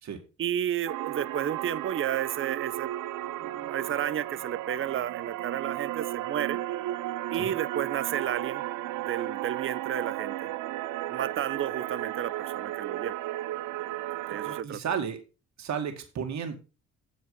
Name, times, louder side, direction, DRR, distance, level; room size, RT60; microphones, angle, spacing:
voice 1, 0.4-2.9 3.4-6.6 7.3-8.6 9.0-10.5 11.1-13.2 14.3-14.8, right 10 dB, 45° right, 0.6 m, -32 dB
sound 1, 0.9-14.6, right 15 dB, 85° right, 0.6 m, -34 dB
voice 2, 14.4-15.2 15.6-16.5, right 7 dB, 65° right, 2.1 m, -33 dB
8.2 x 7.4 x 5.5 m
cardioid pair, 90°, 30 cm